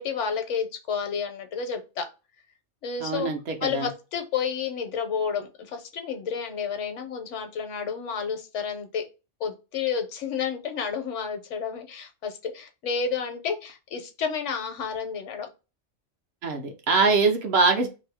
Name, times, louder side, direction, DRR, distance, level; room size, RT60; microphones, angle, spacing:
voice 1, 0.0-2.1 2.8-3.3 3.6-9.0 9.4-15.5, left 6 dB, 75° left, 6 dB, 1.0 m, -30 dB
voice 2, 3.0-3.9 16.4-17.9, right 4 dB, 60° right, 4 dB, 0.9 m, -23 dB
2.7 x 2.6 x 3.4 m, 0.29 s
omnidirectional pair, 1.3 m